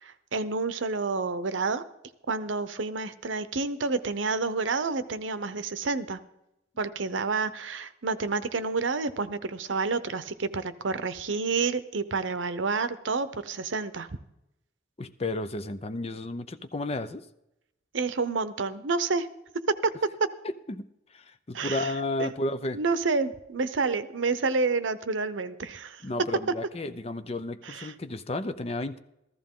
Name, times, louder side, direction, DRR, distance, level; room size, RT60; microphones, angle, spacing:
voice 1, 0.0-1.8 2.3-6.2 6.8-14.1 17.9-19.3 19.8-19.9 21.5-21.9 22.2-22.3 22.7-26.0 27.6-27.9, right 4 dB, 85° right, 12 dB, 0.8 m, -29 dB
voice 2, 15.0-17.2 20.7-20.9 21.1-22.8 26.0-29.0, left 2 dB, 35° left, 11 dB, 0.6 m, -32 dB
14.5 x 14.0 x 3.7 m, 0.84 s
head